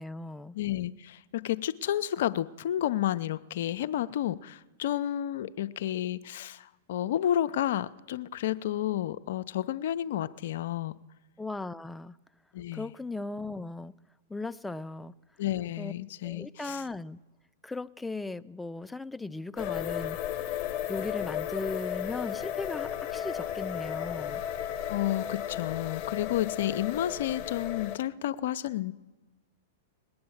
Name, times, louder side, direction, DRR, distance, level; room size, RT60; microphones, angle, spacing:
voice 1, 0.0-0.6 11.4-12.2 12.7-13.9 14.3-15.1 15.8-15.9 16.2-17.2 17.6-20.2 20.9-24.4, left 2 dB, 5° left, 0.4 m, -37 dB
voice 2, 0.5-10.9 12.5-12.9 15.4-16.8 24.9-28.9, left 12 dB, 65° left, 0.5 m, -31 dB
sound 1, 19.6-28.0, left 10 dB, 45° left, 1.0 m, -34 dB
20.0 x 8.7 x 7.2 m
hypercardioid pair, 115°, 0 cm